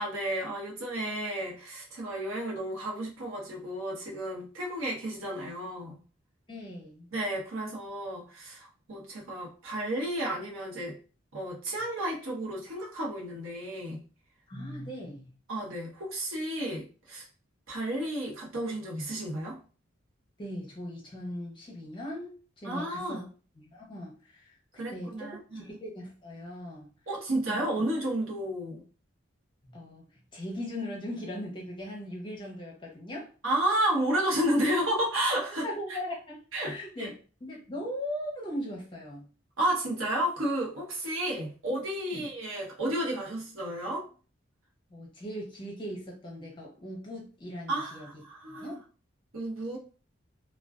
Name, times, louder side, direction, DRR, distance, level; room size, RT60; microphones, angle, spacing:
voice 1, 0.0-6.0 7.1-11.0 11.3-14.0 15.5-17.2 17.7-19.6 22.6-23.3 24.8-25.7 27.1-28.8 33.4-36.0 36.5-37.1 39.6-44.1 47.7-48.7 49.3-49.8, right 1 dB, 85° right, -2 dB, 0.9 m, -32 dB
voice 2, 6.5-7.1 14.5-15.3 20.4-23.2 23.6-24.5 24.9-26.9 27.5-27.6 29.6-30.0 30.3-33.3 35.6-37.1 37.4-39.3 42.1-42.2 44.9-48.1 48.5-48.8, left 1 dB, 25° left, -2 dB, 0.6 m, -39 dB
2.3 x 2.2 x 2.3 m, 0.36 s
head